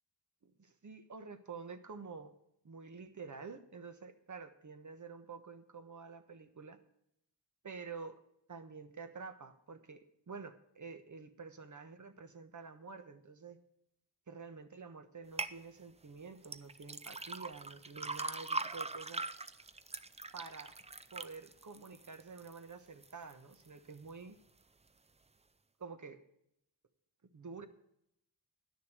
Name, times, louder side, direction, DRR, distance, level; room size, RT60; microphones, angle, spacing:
voice 1, 0.6-2.4 2.6-6.8 7.6-8.2 8.5-13.6 14.3-19.2 20.3-20.7 21.1-24.4 25.8-26.2 27.3-27.7, right 5 dB, 50° right, 9 dB, 1.2 m, -49 dB
sound 1, 15.4-15.6 16.4-22.6 23.0-23.5 24.0-24.1, right 3 dB, 15° right, 0.5 m, -41 dB
11.0 x 6.6 x 8.1 m, 0.77 s
cardioid pair, 75°, 39 cm